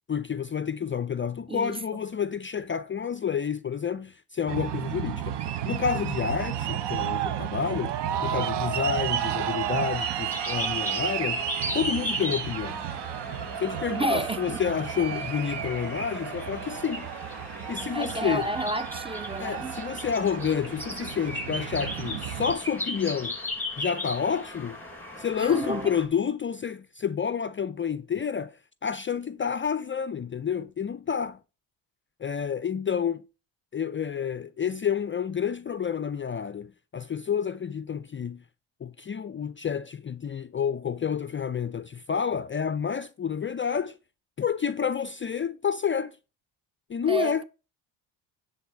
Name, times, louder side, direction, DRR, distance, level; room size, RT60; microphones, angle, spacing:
voice 1, 0.1-8.0 8.2-11.4 11.7-12.9 13.6-17.1 17.7-18.5 19.4-23.4 23.8-24.8 25.2-31.4 32.2-33.2 33.7-38.4 38.8-44.0 44.4-46.2 46.9-47.4, left 7 dB, 25° left, 0.5 m, -29 dB
sound 1, 4.5-22.5, right 10 dB, 55° right, 1.0 m, -32 dB
voice 2, 4.9-5.3 13.9-14.6 17.9-19.8 25.4-25.9 47.1-47.4, right 1 dB, 10° right, 0.7 m, -31 dB
sound 2, 9.9-26.1, left 1 dB, 5° left, 6.5 m, -37 dB
10.5 x 4.1 x 7.4 m
supercardioid pair, 70°, 47 cm